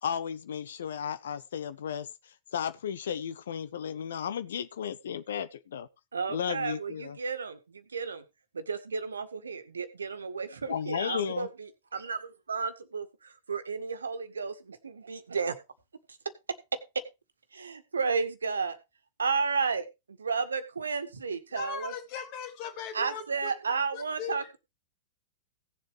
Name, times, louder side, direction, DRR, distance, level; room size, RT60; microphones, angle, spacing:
voice 1, 0.0-5.9 6.3-7.2 10.7-11.5, left 8 dB, 65° left, 0.8 m, -34 dB
voice 2, 6.1-8.2 8.5-15.6 16.1-16.2 16.5-17.0 17.5-18.8 19.2-21.9 22.9-24.6, right 5 dB, 75° right, 1.7 m, -33 dB
voice 3, 21.5-23.5 23.9-24.4, left 7 dB, 45° left, 3.2 m, -39 dB
17.5 x 7.5 x 3.3 m
figure-of-eight pair, 100°, 0 cm